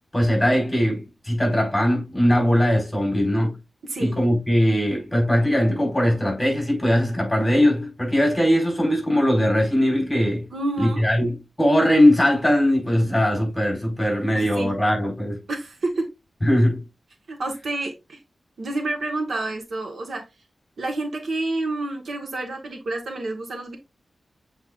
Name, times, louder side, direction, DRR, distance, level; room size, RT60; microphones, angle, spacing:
voice 1, 0.1-3.6 4.0-10.5 10.8-15.4 16.4-16.8, equal, 10° left, 4.6 m, -20 dB
voice 2, 10.5-11.0 14.3-14.7 15.5-16.1 17.3-18.2 18.6-20.2 20.8-23.8, right 2 dB, 75° right, 1.6 m, -29 dB
8.0 x 4.7 x 2.5 m
wide cardioid pair, 95°, 0 cm